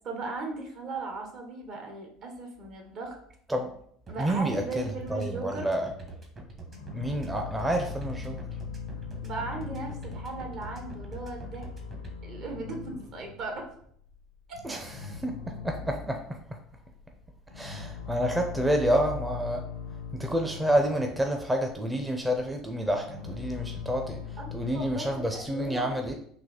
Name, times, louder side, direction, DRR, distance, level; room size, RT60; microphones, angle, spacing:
voice 1, 0.0-3.2 4.1-5.7 9.2-11.7 12.2-13.7 14.5-14.6 24.4-25.9, right 3 dB, 55° right, 3 dB, 1.2 m, -37 dB
sound 1, 4.1-12.1, right 3 dB, 35° right, 1.1 m, -44 dB
voice 2, 4.2-5.9 6.9-8.4 14.6-14.9 15.2-16.6 17.5-19.6 20.1-26.1, equal, 10° right, 3 dB, 0.6 m, -29 dB
sound 2, 6.3-13.8 14.0-14.2 14.5-16.4 16.9-25.4, left 6 dB, 85° left, 0.7 m, -40 dB
4.0 x 2.8 x 4.3 m, 0.66 s
hypercardioid pair, 80°, 0 cm